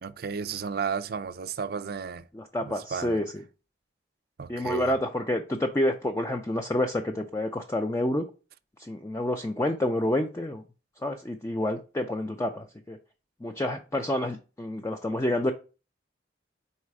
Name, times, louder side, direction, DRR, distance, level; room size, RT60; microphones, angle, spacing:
voice 1, 0.0-2.3 2.6-3.2 4.4-4.9, right 6 dB, 55° right, 0.4 m, -33 dB
voice 2, 2.3-3.4 4.5-8.3 8.8-10.6 11.0-13.0 13.4-15.5, left 1 dB, 15° left, 0.4 m, -28 dB
4.8 x 4.2 x 4.7 m
head